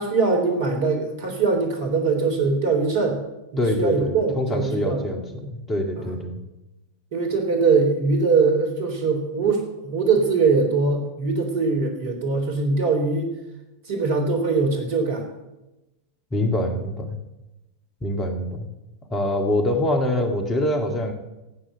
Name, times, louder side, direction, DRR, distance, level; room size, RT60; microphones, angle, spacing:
voice 1, 0.0-3.2 3.5-5.2 6.0-6.1 7.1-13.3 13.9-15.3, right 4 dB, 55° right, 2 dB, 3.6 m, -22 dB
voice 2, 3.6-6.4 16.3-17.2 18.0-18.7 19.1-21.1, left 1 dB, 20° left, 4 dB, 2.1 m, -24 dB
13.5 x 8.9 x 7.9 m, 0.99 s
figure-of-eight pair, 90°, 0 cm